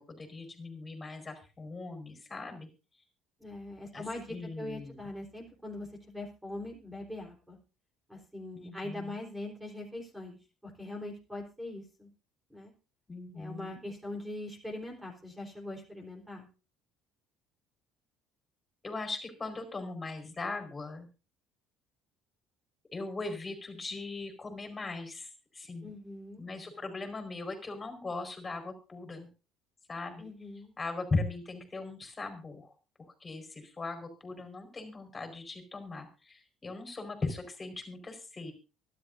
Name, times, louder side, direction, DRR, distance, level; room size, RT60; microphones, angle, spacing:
voice 1, 0.0-2.7 3.9-5.0 8.5-9.2 13.1-13.8 18.8-21.1 22.9-25.9 26.4-29.3 29.9-30.2 30.8-32.7 33.2-38.5, left 3 dB, 20° left, 7 dB, 4.8 m, -39 dB
voice 2, 3.4-7.6 8.1-10.4 10.6-12.1 12.5-12.7 13.3-16.5 25.8-26.5 30.2-30.7, left 1 dB, 5° right, 1 dB, 3.9 m, -42 dB
24.5 x 11.5 x 2.7 m, 0.33 s
cardioid pair, 115°, 0 cm